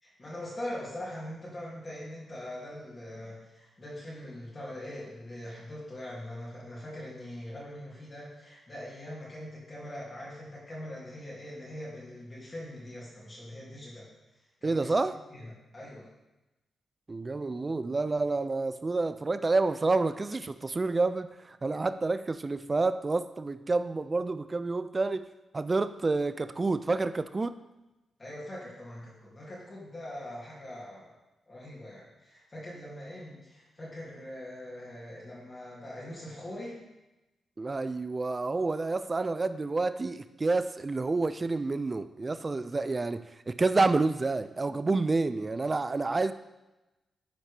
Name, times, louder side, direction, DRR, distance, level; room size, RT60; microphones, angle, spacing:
voice 1, 0.0-14.1 14.6-14.9 15.3-16.1 28.2-31.1 31.5-36.8, left 1 dB, 40° left, -6 dB, 2.3 m, -42 dB
voice 2, 14.6-15.2 17.1-25.3 25.5-27.5 37.6-46.3, right 3 dB, 35° right, 12 dB, 0.4 m, -29 dB
9.1 x 4.3 x 3.3 m, 1.0 s
supercardioid pair, 45°, 0 cm